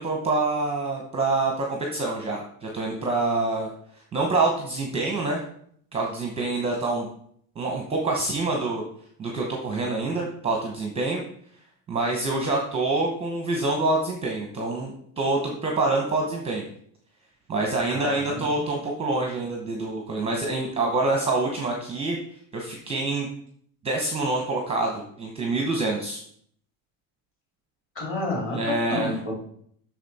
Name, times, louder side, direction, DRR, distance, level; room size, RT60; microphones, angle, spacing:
voice 1, 0.0-3.7 4.1-5.4 5.9-7.1 7.6-8.8 9.2-11.2 11.9-16.7 17.5-22.2 22.5-23.3 23.8-26.2 28.5-29.1, right 2 dB, 15° right, 1 dB, 0.8 m, -26 dB
voice 2, 17.9-18.6 27.9-29.3, left 2 dB, 25° left, -2 dB, 2.8 m, -30 dB
8.1 x 6.2 x 4.1 m, 0.65 s
cardioid pair, 165°, 47 cm